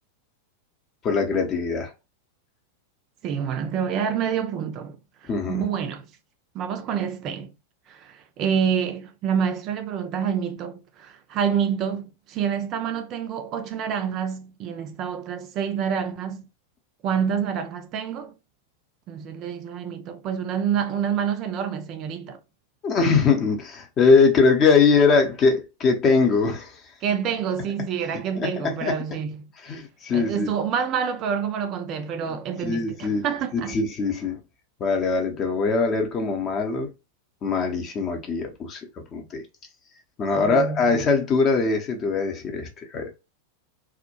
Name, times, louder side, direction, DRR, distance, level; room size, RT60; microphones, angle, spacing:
voice 1, 1.0-1.9 5.3-5.6 22.8-26.8 28.3-29.0 29.6-30.5 32.6-33.2 33.5-34.4 34.8-36.9 37.4-39.4 40.2-43.1, left 4 dB, 30° left, 0.7 m, -22 dB
voice 2, 3.2-5.0 5.5-6.0 6.5-7.5 7.9-16.5 17.0-18.3 19.1-22.4 27.0-29.5 30.1-33.7 40.3-40.8, right 7 dB, 35° right, 0.3 m, -27 dB
2.3 x 2.1 x 2.7 m
figure-of-eight pair, 90°, 0 cm